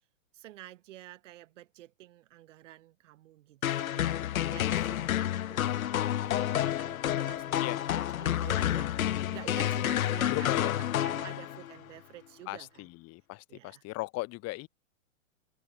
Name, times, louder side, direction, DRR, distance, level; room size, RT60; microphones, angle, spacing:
voice 1, 0.3-12.9 13.5-13.8, right 15 dB, 60° right, 4.5 m, -50 dB
sound 1, 3.6-11.8, left 12 dB, 90° left, 0.7 m, -29 dB
voice 2, 10.3-10.8 12.5-14.7, left 22 dB, 35° left, 2.5 m, -37 dB
hypercardioid pair, 120°, 41 cm